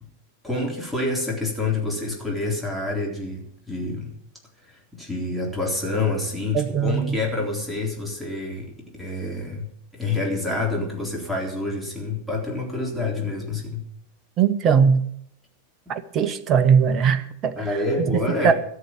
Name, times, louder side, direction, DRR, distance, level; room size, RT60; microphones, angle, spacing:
voice 1, 0.4-4.1 4.9-13.9 17.6-18.5, left 2 dB, ahead, 3.7 m, -27 dB
voice 2, 6.5-7.2 14.4-15.0 15.9-17.5 18.0-18.5, right 7 dB, 30° right, 1.1 m, -20 dB
13.5 x 7.1 x 9.1 m
figure-of-eight pair, 90°, 0 cm